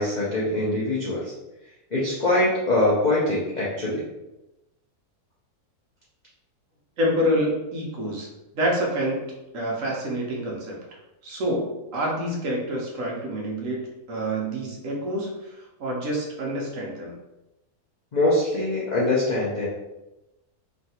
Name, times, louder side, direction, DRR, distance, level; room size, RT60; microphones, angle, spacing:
voice 1, 0.0-1.3 1.9-4.0 18.1-19.7, left 2 dB, 70° left, -7 dB, 0.4 m, -23 dB
voice 2, 7.0-8.3 8.5-9.2 9.5-10.8 11.2-13.8 14.1-15.5 15.8-17.1, equal, 65° right, -3 dB, 1.0 m, -27 dB
3.1 x 2.3 x 2.7 m, 0.96 s
omnidirectional pair, 1.6 m